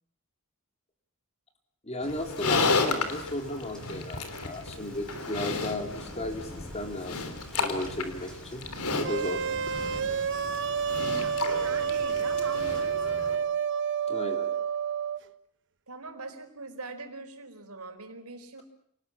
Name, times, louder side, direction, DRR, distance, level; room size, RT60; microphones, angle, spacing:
voice 1, 1.8-8.7 8.9-9.5 14.1-14.5, left 1 dB, 30° left, 5 dB, 3.8 m, -35 dB
sound 1, 2.0-12.8, equal, 5° left, 5.7 m, -48 dB
Livestock farm animals working animals, 2.1-13.4, left 3 dB, 85° left, 3.6 m, -33 dB
sound 2, 9.0-15.2, right 7 dB, 55° right, 1.2 m, -29 dB
voice 2, 9.9-10.2 11.1-13.5 15.9-18.6, right 3 dB, 90° right, 5 dB, 4.5 m, -42 dB
28.5 x 19.5 x 8.7 m, 0.70 s
head